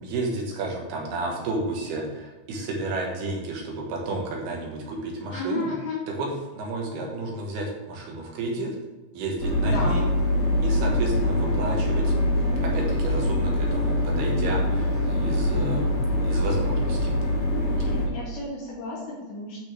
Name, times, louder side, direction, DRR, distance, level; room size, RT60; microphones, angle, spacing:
voice 1, 0.0-5.7 6.2-8.8 9.1-10.0 10.6-12.1 12.6-17.1, right 2 dB, 90° right, -1 dB, 3.8 m, -31 dB
voice 2, 5.3-6.0 9.6-10.0 17.8-19.6, left 2 dB, 80° left, -5 dB, 4.8 m, -33 dB
sound 1, 9.4-18.1, left 1 dB, 35° left, 1.9 m, -24 dB
12.0 x 6.1 x 3.6 m, 1.2 s
omnidirectional pair, 4.4 m